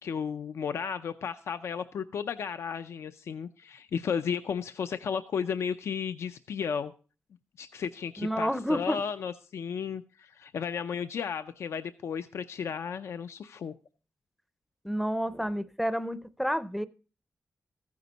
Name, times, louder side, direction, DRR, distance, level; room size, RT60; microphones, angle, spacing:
voice 1, 0.0-6.9 7.6-13.7, left 7 dB, 80° left, 0.5 m, -34 dB
voice 2, 8.2-9.0 14.8-16.9, equal, ahead, 0.5 m, -30 dB
14.5 x 9.6 x 3.9 m
wide cardioid pair, 160°, 5 cm